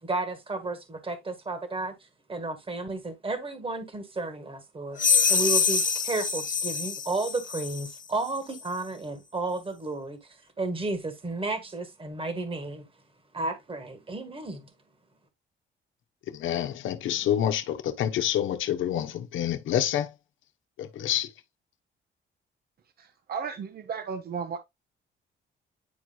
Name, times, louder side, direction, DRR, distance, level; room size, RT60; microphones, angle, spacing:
voice 1, 0.0-1.9 2.3-12.9 13.3-14.7, right 3 dB, 25° right, 1.6 m, -33 dB
sound 1, 5.0-8.0, left 6 dB, 40° left, 1.1 m, -25 dB
voice 2, 16.3-20.1 20.8-21.3, left 11 dB, 80° left, 1.0 m, -27 dB
voice 3, 23.0-24.6, right 6 dB, 50° right, 1.0 m, -34 dB
9.8 x 4.7 x 2.3 m
cardioid pair, 90°, 20 cm